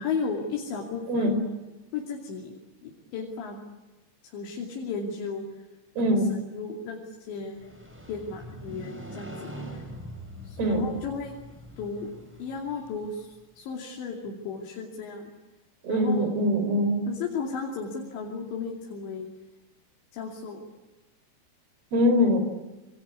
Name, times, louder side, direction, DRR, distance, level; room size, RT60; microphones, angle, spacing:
voice 1, 0.0-1.3 1.9-2.6 2.8-3.6 4.3-5.4 6.0-6.2 6.5-7.8 8.1-9.8 10.4-11.3 11.8-12.1 12.4-15.3 15.9-16.3 17.1-19.3 20.1-20.6, left 5 dB, 85° left, 0 dB, 5.0 m, -34 dB
voice 2, 1.1-1.4 6.0-6.3 10.6-10.9 15.8-17.0 21.9-22.4, left 1 dB, 60° right, 8 dB, 6.4 m, -23 dB
Motorcycle, 7.4-13.3, equal, 5° right, 5.5 m, -43 dB
28.0 x 25.5 x 8.4 m, 1.1 s
omnidirectional pair, 5.0 m